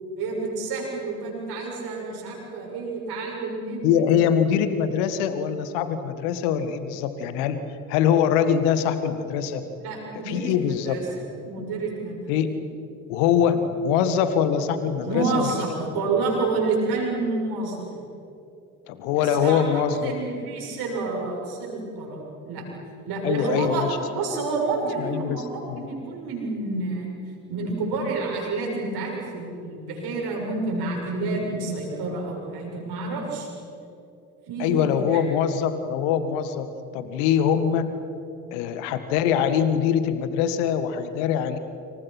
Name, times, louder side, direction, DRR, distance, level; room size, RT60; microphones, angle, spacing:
voice 1, 0.2-4.0 9.8-11.1 11.4-12.3 15.0-17.8 19.2-22.7 23.0-23.9 24.1-27.1 27.5-33.5 34.5-35.2, right 3 dB, 60° right, -1 dB, 7.5 m, -29 dB
voice 2, 3.8-7.6 7.9-9.6 10.3-11.0 12.3-12.5 13.1-15.5 18.9-20.1 23.2-24.0 25.0-25.4 25.7-25.8 34.6-36.7 36.9-37.9 38.5-41.6, left 8 dB, 65° left, 10 dB, 1.8 m, -23 dB
29.5 x 27.0 x 6.0 m, 2.8 s
figure-of-eight pair, 50°, 44 cm